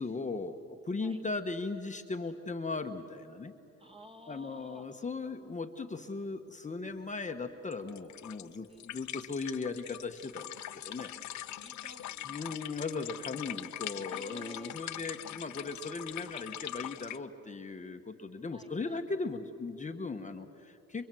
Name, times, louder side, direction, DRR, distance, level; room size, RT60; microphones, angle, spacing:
voice 1, 0.0-3.5 4.3-11.6 12.3-21.1, left 3 dB, 25° left, 6 dB, 1.2 m, -38 dB
voice 2, 3.8-5.1 8.7-8.9 11.5-12.8 14.1-14.7 18.5-19.0 21.0-21.1, equal, 20° right, 5 dB, 2.1 m, -54 dB
sound 1, 7.7-17.2, left 12 dB, 70° left, 0.8 m, -42 dB
29.0 x 23.5 x 7.7 m, 2.8 s
cardioid pair, 90°, 30 cm